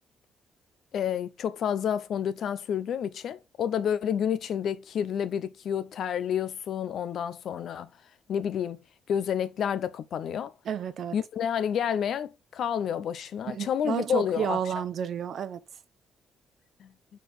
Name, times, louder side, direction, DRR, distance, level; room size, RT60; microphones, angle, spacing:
voice 1, 0.9-7.9 8.3-8.8 9.1-10.5 11.1-14.6 16.8-16.9, left 8 dB, 65° left, 0.6 m, -29 dB
voice 2, 10.6-11.2 13.5-15.6, right 8 dB, 65° right, 0.7 m, -31 dB
4.6 x 4.5 x 4.7 m
cardioid pair, 90°, 0 cm